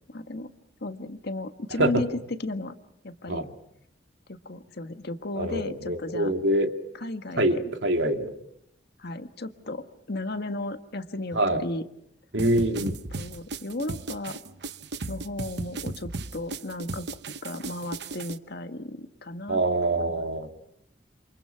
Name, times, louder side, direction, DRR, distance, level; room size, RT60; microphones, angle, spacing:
voice 1, 0.1-0.5 0.8-2.7 3.0-3.4 4.3-6.3 7.0-7.6 9.0-11.8 12.7-14.4 15.1-17.1 17.4-20.2, left 2 dB, 60° left, 8 dB, 1.6 m, -35 dB
voice 2, 5.4-6.7 7.4-8.3 11.3-11.6 12.3-13.0 19.5-20.6, right 1 dB, 90° right, 5 dB, 2.6 m, -25 dB
sound 1, 12.4-18.4, right 3 dB, 65° right, 0.9 m, -36 dB
28.5 x 28.0 x 5.8 m, 0.73 s
head